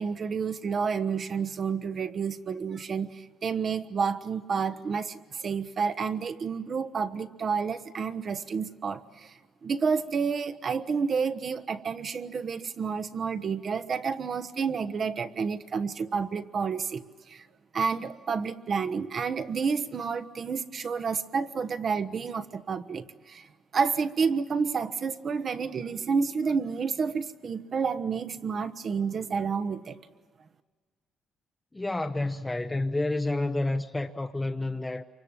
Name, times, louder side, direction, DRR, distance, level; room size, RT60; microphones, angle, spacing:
voice 1, 0.0-17.4 17.7-23.5 23.7-30.0, right 5 dB, 50° right, 1.2 m, -30 dB
voice 2, 31.7-35.0, left 2 dB, 15° left, 0.9 m, -29 dB
27.5 x 24.5 x 9.0 m
cardioid pair, 90°, 0 cm